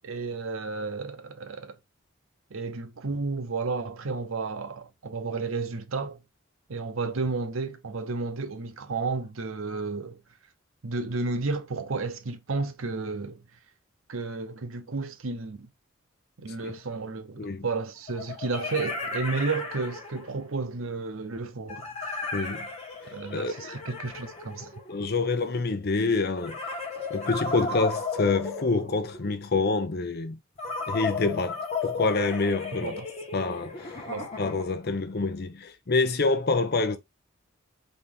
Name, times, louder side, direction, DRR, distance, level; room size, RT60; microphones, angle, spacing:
voice 1, 0.0-1.8 2.5-6.2 6.7-10.2 10.8-13.4 14.1-15.7 16.4-22.1 23.1-24.7 32.8-33.1 34.1-34.3, right 3 dB, 85° right, 0.7 m, -32 dB
sound 1, 16.6-16.7 18.1-20.4 21.7-25.2 26.4-29.4 30.6-34.9, left 3 dB, 35° left, 1.5 m, -35 dB
voice 2, 22.3-22.7 23.0-23.5 24.9-26.6 27.1-30.4 30.9-33.0 33.3-34.0 34.4-37.0, left 3 dB, 50° left, 0.7 m, -27 dB
4.1 x 3.0 x 3.5 m
head